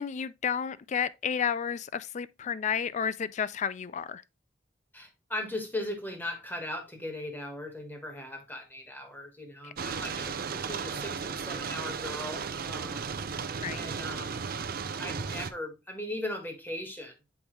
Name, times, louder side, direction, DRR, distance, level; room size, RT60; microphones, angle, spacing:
voice 1, 0.0-4.2 13.6-13.9, left 7 dB, 40° left, 0.4 m, -31 dB
voice 2, 4.9-13.1 13.7-14.3 15.0-17.1, left 1 dB, 10° left, 1.4 m, -38 dB
sound 1, 9.8-15.5, right 5 dB, 55° right, 0.6 m, -35 dB
7.1 x 4.9 x 3.1 m
head